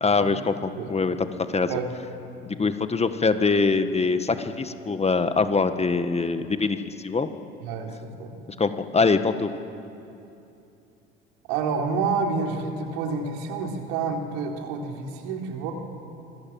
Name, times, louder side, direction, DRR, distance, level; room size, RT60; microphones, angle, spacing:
voice 1, 0.0-1.2 1.5-1.7 2.4-7.3 8.6-9.5, left 4 dB, 20° left, 9 dB, 1.7 m, -23 dB
voice 2, 0.7-1.1 1.7-1.9 7.6-8.5 11.5-15.7, right 4 dB, 65° right, 2 dB, 4.2 m, -29 dB
26.5 x 22.0 x 7.7 m, 2.8 s
hypercardioid pair, 65°, 30 cm